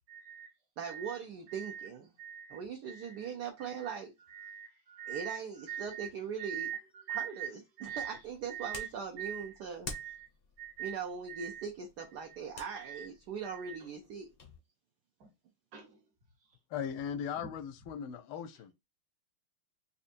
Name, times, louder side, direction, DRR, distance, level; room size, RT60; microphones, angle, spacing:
voice 1, 0.1-0.5 0.8-1.2 1.5-1.9 2.2-2.6 2.9-3.3 3.6-4.0 4.3-5.4 5.7-6.1 6.4-6.8 7.1-7.5 7.8-8.2 8.5-8.9 9.2-9.5 9.9-10.3 10.6-11.0 11.3-11.7 12.7-13.1 13.4-13.8 15.2-15.3 15.7-16.0 17.4-17.5, right 10 dB, 50° right, 1.5 m, -42 dB
voice 2, 0.8-2.1 2.5-4.1 5.1-6.7 7.1-9.9 10.8-14.3, right 6 dB, 70° right, 1.0 m, -40 dB
sound 1, 7.8-14.6, left 3 dB, 60° left, 0.6 m, -51 dB
voice 3, 16.7-18.7, left 8 dB, 85° left, 1.5 m, -38 dB
4.3 x 2.6 x 2.5 m
omnidirectional pair, 2.3 m